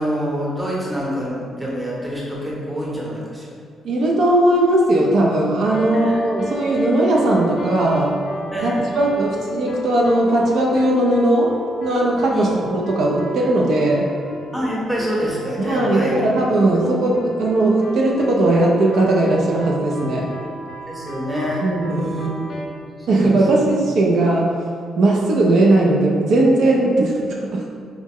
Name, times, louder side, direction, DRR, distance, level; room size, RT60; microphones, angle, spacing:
voice 1, 0.0-3.5 5.9-6.2 8.5-8.9 12.3-12.7 14.5-16.3 20.9-22.3 22.8-23.3 23.5-23.7, equal, 10° right, -5 dB, 0.8 m, -26 dB
voice 2, 3.8-8.2 8.6-11.5 11.8-14.1 15.6-20.3 21.6-22.1 23.1-24.6 25.0-27.7, right 1 dB, 65° right, -2 dB, 0.5 m, -18 dB
sound 1, 5.6-22.7, left 1 dB, 60° left, 0.5 m, -33 dB
4.7 x 2.1 x 3.5 m, 2.2 s
cardioid pair, 120°, 0 cm